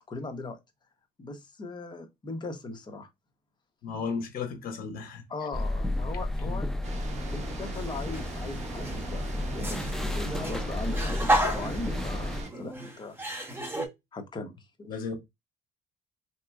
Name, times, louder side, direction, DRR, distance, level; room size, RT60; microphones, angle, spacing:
voice 1, 0.1-0.6 1.2-3.1 5.3-6.7 7.0-13.2 14.1-15.1, left 3 dB, 25° left, 0.8 m, -39 dB
voice 2, 3.8-5.2 6.4-6.6 12.5-12.7 14.9-15.1, left 5 dB, 60° left, 1.0 m, -35 dB
sound 1, 5.5-12.4, left 1 dB, 5° left, 0.3 m, -32 dB
sound 2, 6.8-12.5, right 3 dB, 40° right, 0.8 m, -41 dB
sound 3, 7.7-8.3 8.7-13.9, right 1 dB, 15° right, 0.9 m, -32 dB
3.4 x 2.9 x 2.2 m
cardioid pair, 110°, 17 cm